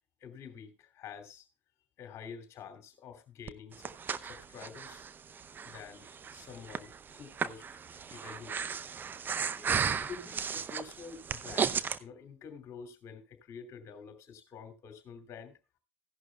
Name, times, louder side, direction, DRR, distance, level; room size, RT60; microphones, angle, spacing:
voice 1, 0.2-1.5 2.0-5.1 5.6-7.8 8.1-8.8 9.6-15.6, left 6 dB, 40° left, 2.8 m, -48 dB
Breathing, 3.5-12.0, right 6 dB, 25° right, 0.7 m, -35 dB
15.5 x 11.0 x 2.3 m
figure-of-eight pair, 75°, 8 cm